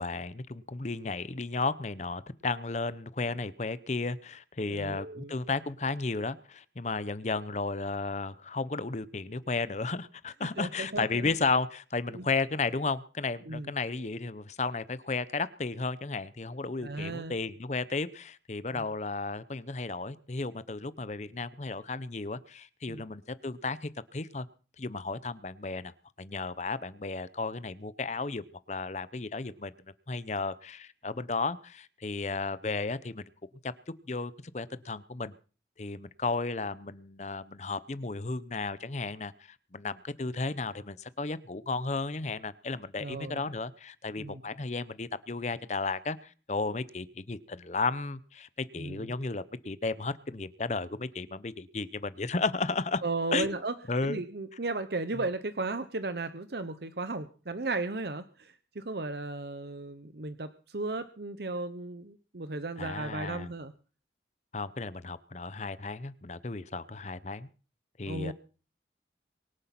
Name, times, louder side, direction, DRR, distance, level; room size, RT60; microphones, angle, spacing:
voice 1, 0.0-24.5 24.8-25.9 26.2-29.7 30.1-33.2 33.6-33.7 34.1-35.3 35.8-39.3 39.7-53.0 53.3-53.6 53.9-54.2 62.8-63.5 64.5-67.5 68.0-68.3, left 3 dB, 40° left, 16 dB, 0.7 m, -34 dB
voice 2, 4.6-5.3 10.6-11.3 12.1-12.3 13.5-13.7 16.8-17.4 18.7-18.8 22.9-23.0 43.0-43.5 44.2-44.4 48.8-49.1 53.0-53.7 54.0-63.7 68.1-68.3, right 3 dB, 60° right, 12 dB, 0.9 m, -35 dB
23.5 x 8.2 x 5.9 m, 0.38 s
head